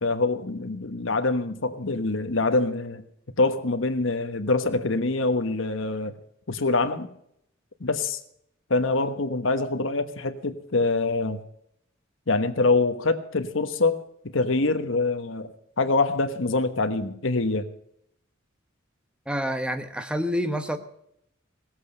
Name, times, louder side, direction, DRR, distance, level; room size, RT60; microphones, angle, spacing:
voice 1, 0.0-3.0 3.4-6.1 6.5-7.1 7.8-8.2 8.7-11.4 12.3-14.0 14.3-15.5 15.8-17.7, left 3 dB, 70° left, 8 dB, 1.2 m, -25 dB
voice 2, 19.3-20.8, equal, 5° right, 9 dB, 1.0 m, -27 dB
17.5 x 8.0 x 6.6 m, 0.74 s
head